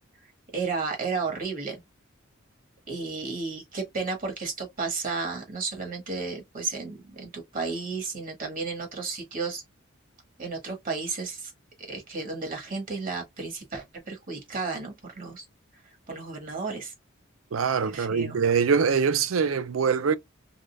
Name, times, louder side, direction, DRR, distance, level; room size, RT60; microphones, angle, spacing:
voice 1, 0.5-1.8 2.9-9.6 10.4-11.5 11.9-15.4 16.1-16.9 17.9-18.4, right 4 dB, 45° right, 1.3 m, -33 dB
voice 2, 17.5-20.2, right 6 dB, 80° right, 0.5 m, -23 dB
3.7 x 3.2 x 2.2 m
head